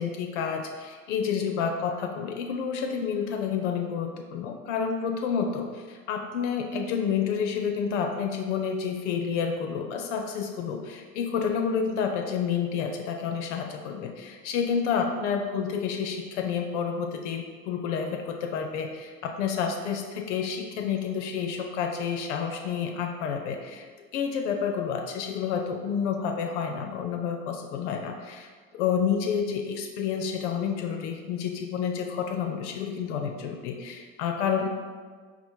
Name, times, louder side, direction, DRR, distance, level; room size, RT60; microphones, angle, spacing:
voice 1, 0.0-28.5 28.7-34.7, left 7 dB, 65° left, 4 dB, 0.5 m, -29 dB
4.1 x 2.1 x 4.4 m, 1.5 s
figure-of-eight pair, 70°, 40 cm